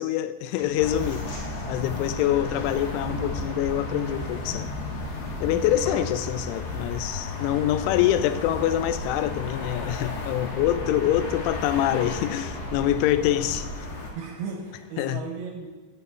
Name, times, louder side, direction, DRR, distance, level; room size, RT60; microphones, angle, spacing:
voice 1, 0.0-4.7 5.4-13.7 15.0-15.2, left 12 dB, 90° left, 3.0 m, -25 dB
sound 1, 0.6-6.3, left 1 dB, 40° left, 3.1 m, -39 dB
sound 2, 0.6-14.9, right 2 dB, 25° right, 0.4 m, -48 dB
sound 3, 0.8-14.1, left 2 dB, 60° left, 2.7 m, -34 dB
voice 2, 6.0-6.5 14.2-15.7, right 5 dB, 75° right, 2.5 m, -36 dB
8.5 x 5.8 x 7.9 m
omnidirectional pair, 5.4 m